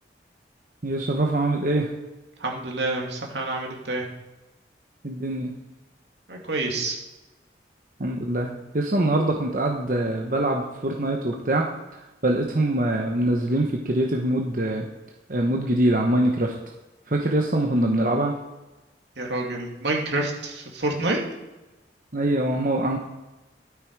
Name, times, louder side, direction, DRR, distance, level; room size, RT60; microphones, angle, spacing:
voice 1, 0.8-1.9 5.0-5.5 8.0-14.9 15.3-16.5 17.1-18.3 22.1-23.0, right 1 dB, 50° right, 1 dB, 1.0 m, -24 dB
voice 2, 2.4-4.0 6.3-7.0 19.2-21.2, right 2 dB, 80° right, 0 dB, 2.6 m, -28 dB
13.0 x 8.4 x 4.8 m, 1.1 s
head